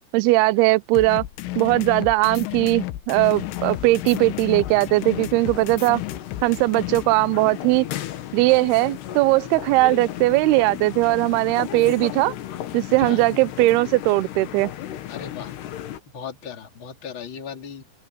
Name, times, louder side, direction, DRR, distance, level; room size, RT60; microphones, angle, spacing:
voice 1, 0.1-1.2 1.6-6.0 6.4-7.9 8.3-12.3 12.7-14.7, right 20 dB, 85° right, 2.2 m, -19 dB
sound 1, 0.9-7.1, left 17 dB, 90° left, 3.4 m, -32 dB
sound 2, 3.2-16.0, left 12 dB, 70° left, 3.4 m, -35 dB
voice 2, 15.1-15.6 16.1-17.8, left 7 dB, 30° left, 3.1 m, -36 dB
open air
omnidirectional pair, 5.3 m